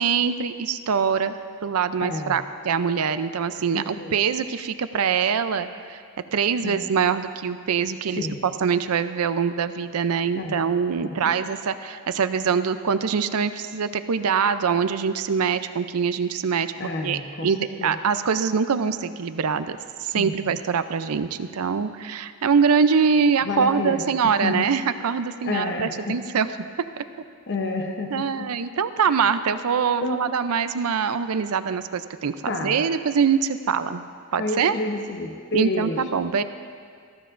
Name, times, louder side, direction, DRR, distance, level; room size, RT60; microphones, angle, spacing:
voice 1, 0.0-1.3 1.6-6.0 6.3-16.7 17.0-26.5 28.1-34.0 34.3-34.7 35.5-36.4, right 6 dB, 80° right, 11 dB, 0.5 m, -24 dB
voice 2, 2.0-2.4 3.5-4.2 6.6-6.9 8.1-8.4 10.4-10.6 11.0-11.2 16.8-18.0 20.1-20.6 23.4-24.7 25.4-26.2 27.5-28.5 29.1-29.2 30.0-30.2 32.4-32.8 34.4-36.0, left 2 dB, 50° left, 2 dB, 0.9 m, -30 dB
20.0 x 14.5 x 2.6 m, 2.1 s
head